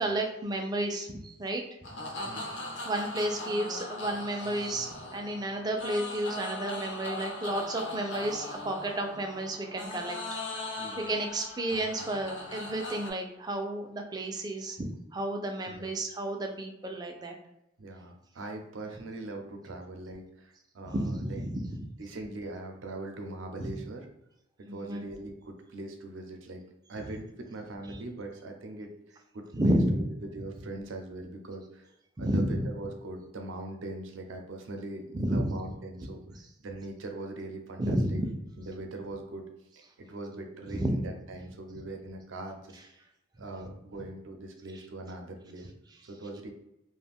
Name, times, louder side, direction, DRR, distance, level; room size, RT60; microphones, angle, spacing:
voice 1, 0.0-1.6 2.8-10.2 11.0-17.3 20.9-21.8 23.6-23.8 24.6-25.0 27.9-28.0 29.5-30.0 32.2-32.6 35.1-35.5 37.8-38.3 40.7-41.0, right 1 dB, 20° right, 3 dB, 0.3 m, -31 dB
sound 1, 1.8-13.1, left 2 dB, 70° left, 0.6 m, -39 dB
voice 2, 2.2-2.5 10.8-11.2 15.7-15.9 17.8-21.4 22.0-24.1 24.6-26.6 26.9-31.9 32.2-36.2 36.6-38.2 38.6-39.5 40.0-42.8 43.4-45.7 46.1-46.5, right 2 dB, 85° right, 4 dB, 0.5 m, -41 dB
2.4 x 2.2 x 3.4 m, 0.85 s
head